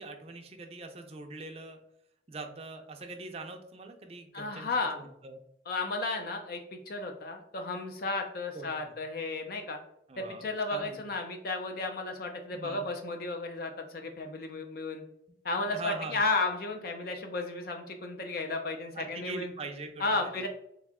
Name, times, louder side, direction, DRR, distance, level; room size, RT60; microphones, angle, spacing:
voice 1, 0.0-1.8 2.3-5.4 8.5-8.7 10.1-11.0 12.5-12.9 15.5-16.2 18.9-20.0, right 3 dB, 35° right, 5 dB, 0.5 m, -42 dB
voice 2, 4.3-5.0 5.7-9.8 10.2-15.0 15.4-19.5 20.0-20.5, left 3 dB, 55° left, 4 dB, 0.5 m, -33 dB
3.5 x 3.1 x 3.6 m, 0.76 s
head